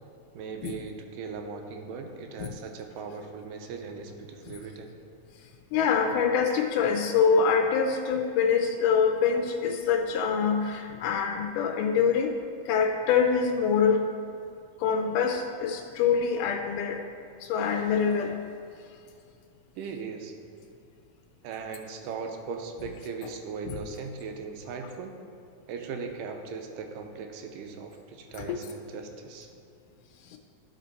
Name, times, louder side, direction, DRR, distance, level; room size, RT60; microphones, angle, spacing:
voice 1, 0.3-4.9 19.8-20.3 21.4-25.2 25.7-29.5, right 5 dB, 85° right, 4 dB, 2.2 m, -38 dB
voice 2, 5.7-12.3 12.7-14.1 14.8-17.0 17.4-18.4 23.7-23.8 28.5-28.6 30.3-30.4, left 6 dB, 80° left, 3 dB, 2.0 m, -25 dB
12.0 x 4.3 x 4.0 m, 2.4 s
omnidirectional pair, 3.8 m